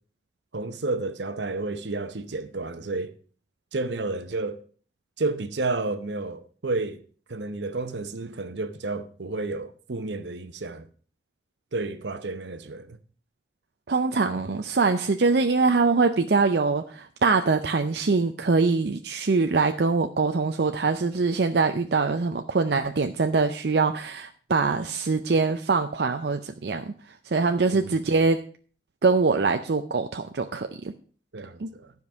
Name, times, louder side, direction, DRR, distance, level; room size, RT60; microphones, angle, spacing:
voice 1, 0.5-3.1 3.7-4.6 5.2-7.0 7.3-10.9 11.7-13.0 27.7-28.0 31.3-31.9, right 3 dB, 85° right, 0.9 m, -31 dB
voice 2, 13.9-26.9 27.3-28.4 29.0-30.7 31.6-31.7, right 4 dB, 65° right, 0.6 m, -23 dB
12.0 x 5.3 x 6.1 m
head